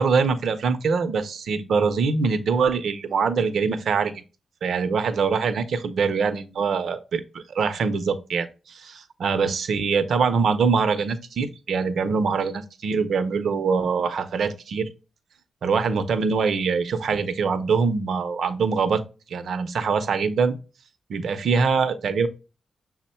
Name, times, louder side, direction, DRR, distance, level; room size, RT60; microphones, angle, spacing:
voice 1, 0.0-4.1 4.6-14.9 15.6-19.0 19.3-20.5 21.1-22.3, right 5 dB, 70° right, 0.6 m, -23 dB
6.0 x 2.1 x 4.2 m
wide cardioid pair, 110°, 0 cm